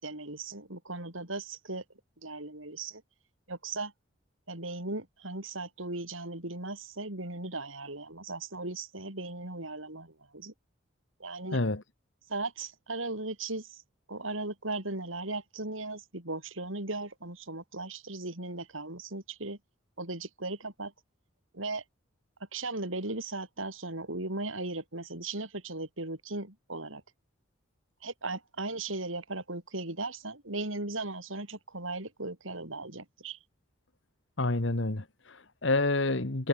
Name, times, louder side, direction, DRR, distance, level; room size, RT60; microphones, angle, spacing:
voice 1, 0.0-1.8 2.2-3.0 3.5-3.9 4.5-10.5 11.2-11.6 12.3-13.8 14.1-19.6 20.0-20.9 21.5-21.8 22.5-27.0 28.0-33.4, right 2 dB, 85° right, 6.3 m, -37 dB
voice 2, 11.5-11.8 34.4-36.5, left 2 dB, 70° left, 1.7 m, -28 dB
head